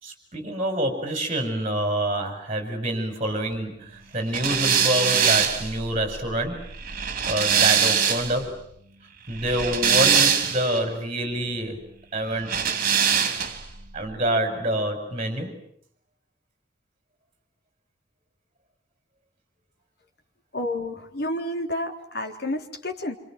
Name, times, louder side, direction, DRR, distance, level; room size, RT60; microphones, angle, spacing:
voice 1, 0.0-6.6 7.3-8.6 9.3-11.8 12.1-12.6 13.9-15.5, right 1 dB, 35° right, 6 dB, 5.7 m, -27 dB
sound 1, 4.3-8.4 9.3-10.8 12.4-13.7, right 7 dB, 50° right, 3.2 m, -22 dB
voice 2, 20.5-23.2, left 1 dB, 60° left, 4 dB, 3.7 m, -30 dB
27.5 x 27.0 x 7.4 m, 0.66 s
head